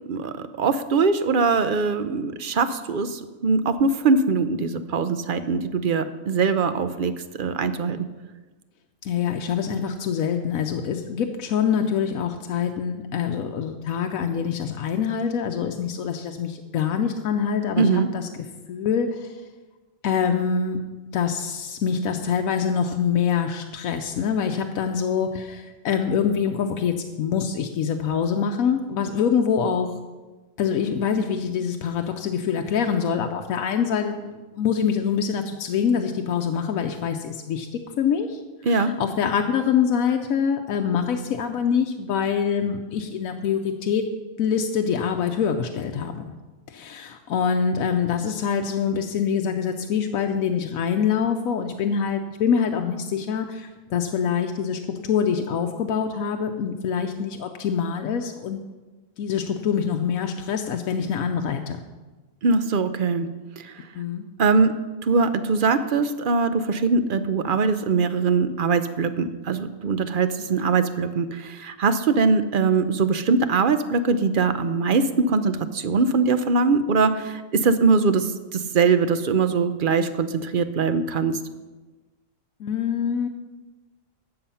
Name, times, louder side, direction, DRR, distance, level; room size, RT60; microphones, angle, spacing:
voice 1, 0.1-7.1 7.4-8.0 17.8-18.1 38.6-38.9 62.4-63.3 63.6-63.7 64.4-64.7 65.0-81.4, right 4 dB, 50° right, 11 dB, 0.7 m, -22 dB
voice 2, 9.0-19.3 20.0-20.8 21.1-30.0 30.6-34.2 34.5-37.7 38.0-38.4 38.7-44.1 44.4-46.3 46.7-58.6 59.2-61.8 63.9-64.2 82.6-83.3, left 7 dB, 90° left, 4 dB, 1.1 m, -25 dB
13.0 x 7.8 x 5.6 m, 1.2 s
omnidirectional pair, 1.4 m